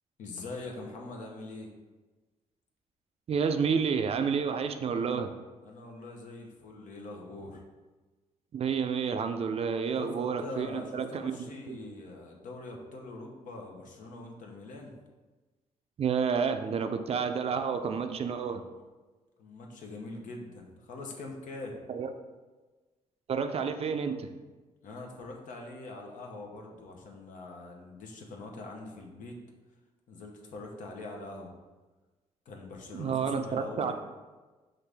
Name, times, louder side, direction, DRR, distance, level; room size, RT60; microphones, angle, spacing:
voice 1, 0.2-1.7 5.6-7.6 10.0-10.1 10.4-15.0 19.4-21.7 24.8-29.4 30.1-31.5 32.5-33.9, left 2 dB, 75° left, 1 dB, 0.8 m, -43 dB
voice 2, 3.3-5.3 8.5-11.8 16.0-18.6 21.9-22.1 23.3-24.3 32.9-33.9, right 6 dB, 50° right, 7 dB, 0.4 m, -30 dB
5.8 x 2.6 x 3.4 m, 1.3 s
cardioid pair, 80°, 13 cm